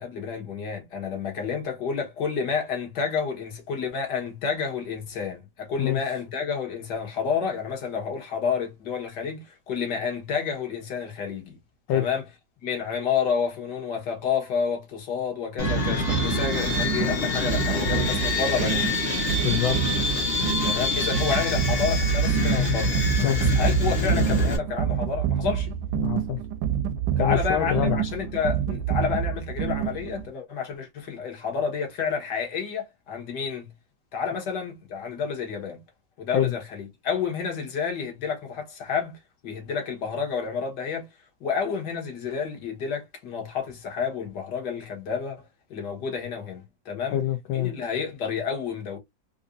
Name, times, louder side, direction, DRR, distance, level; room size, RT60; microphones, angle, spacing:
voice 1, 0.0-11.6 11.9-12.2 12.6-18.9 20.6-23.0 23.4-25.7 27.2-33.7 34.1-35.8 36.2-39.2 39.4-41.1 41.4-45.4 45.7-47.2 47.5-49.0, left 6 dB, 60° left, 1.8 m, -30 dB
sound 1, 15.6-24.6, left 1 dB, 35° left, 1.2 m, -25 dB
sound 2, 15.6-30.3, right 9 dB, 75° right, 1.2 m, -28 dB
voice 2, 19.4-19.8 23.1-23.6 26.0-26.4 27.2-28.0 36.3-36.5 47.1-47.7, left 11 dB, 80° left, 1.5 m, -25 dB
4.1 x 2.6 x 2.5 m
omnidirectional pair, 2.2 m